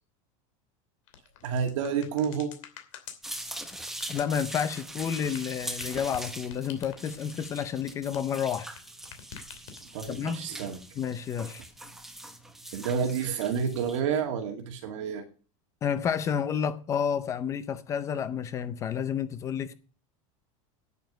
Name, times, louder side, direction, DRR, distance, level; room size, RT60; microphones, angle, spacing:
sound 1, 1.1-8.8 9.0-10.1, left 9 dB, 75° left, 2.8 m, -46 dB
voice 1, 1.4-2.5 9.9-10.8 12.7-15.2, right 7 dB, 70° right, 2.3 m, -29 dB
sound 2, 3.2-14.0, right 1 dB, ahead, 0.9 m, -42 dB
voice 2, 4.1-8.7 10.1-10.5 11.0-11.6 15.8-19.7, left 8 dB, 20° left, 0.5 m, -30 dB
9.6 x 9.1 x 6.3 m
supercardioid pair, 180°, 16 cm